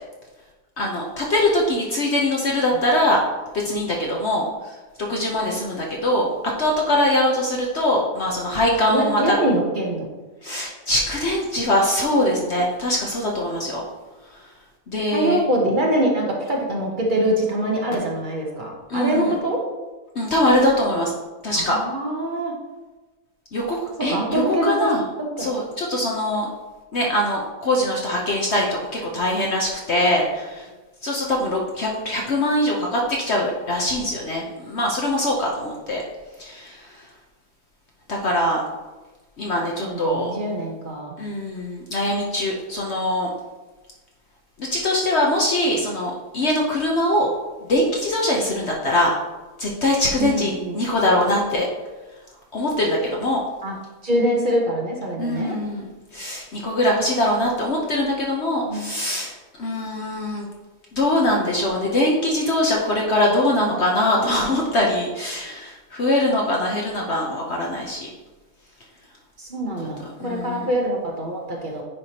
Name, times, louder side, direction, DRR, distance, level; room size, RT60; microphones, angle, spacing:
voice 1, 0.8-3.2 3.5-4.5 5.1-6.3 6.6-9.4 10.4-13.8 14.9-15.4 18.9-19.4 20.1-21.1 21.4-21.8 23.5-25.0 25.4-26.5 26.9-30.7 31.0-36.0 36.4-36.8 38.1-38.6 39.4-40.3 41.2-43.3 44.6-47.3 47.7-49.1 49.6-51.7 52.5-53.4 55.2-59.3 59.6-60.4 60.9-68.1 70.0-70.7, left 1 dB, 50° left, -1 dB, 1.0 m, -22 dB
voice 2, 8.9-10.1 15.1-19.6 21.5-22.5 24.1-24.9 25.4-25.5 39.8-41.1 50.2-50.8 53.6-53.8 54.0-55.5 58.6-58.8 69.4-71.8, right 1 dB, 35° right, -1 dB, 0.9 m, -24 dB
9.8 x 4.8 x 2.9 m, 1.2 s
omnidirectional pair, 1.7 m